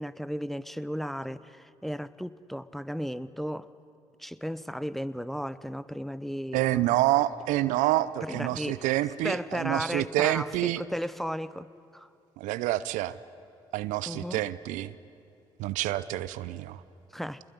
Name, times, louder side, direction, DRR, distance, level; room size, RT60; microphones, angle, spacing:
voice 1, 0.0-3.7 4.2-7.0 8.2-8.8 9.2-11.7 11.9-12.1 14.1-14.4 17.1-17.4, equal, ahead, 16 dB, 0.9 m, -35 dB
voice 2, 6.5-10.8 12.4-13.2 13.7-14.9 15.6-16.8, right 15 dB, 80° right, 16 dB, 0.7 m, -27 dB
25.5 x 21.0 x 9.7 m, 2.7 s
hypercardioid pair, 50°, 13 cm